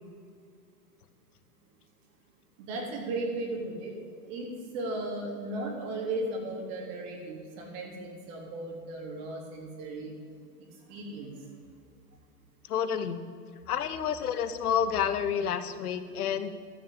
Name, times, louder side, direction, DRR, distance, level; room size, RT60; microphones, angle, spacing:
voice 1, 2.6-4.0 4.2-10.1 10.9-11.4, right 2 dB, 55° right, -1 dB, 3.7 m, -36 dB
voice 2, 12.7-13.2 13.7-16.5, left 8 dB, 75° left, 11 dB, 1.1 m, -29 dB
13.5 x 6.8 x 8.3 m, 2.2 s
hypercardioid pair, 100°, 45 cm